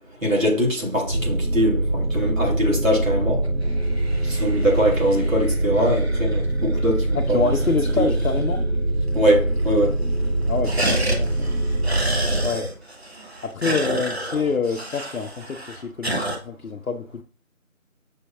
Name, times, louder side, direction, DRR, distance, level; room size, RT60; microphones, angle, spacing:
voice 1, 0.2-3.4 4.2-8.1 9.1-10.0, equal, 65° right, 1.8 m, -22 dB
sound 1, 1.0-12.5, right 1 dB, 85° right, 1.4 m, -23 dB
sound 2, 3.4-8.8 9.1-9.2 9.4-9.9 10.2-16.4, right 1 dB, 50° right, 0.8 m, -31 dB
voice 2, 7.1-8.6 10.5-11.6 12.4-12.7 13.4-17.2, left 5 dB, 75° left, 0.6 m, -26 dB
6.2 x 2.8 x 2.3 m
figure-of-eight pair, 170°, 42 cm